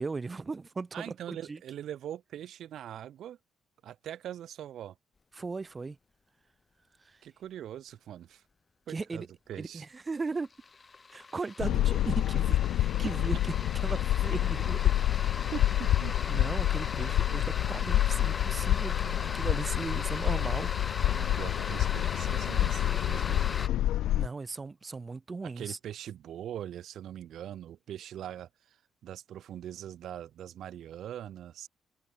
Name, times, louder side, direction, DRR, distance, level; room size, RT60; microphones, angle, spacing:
voice 1, 0.0-1.6 5.4-6.0 7.0-7.2 8.9-9.3 9.6-10.5 11.1-13.4 13.7-14.9 16.3-20.7 24.1-25.8, right 4 dB, 30° right, 4.4 m, -37 dB
voice 2, 0.9-3.4 3.8-5.0 7.2-8.4 8.9-9.9 15.1-15.2 15.5-16.4 17.3-17.4 21.1-23.5 25.4-28.8 29.0-31.7, right 11 dB, 75° right, 2.1 m, -42 dB
sound 1, 9.5-9.6 10.0-23.7, left 4 dB, 35° left, 3.5 m, -39 dB
sound 2, 11.6-24.3, left 13 dB, 85° left, 1.0 m, -28 dB
cardioid pair, 75°, 0 cm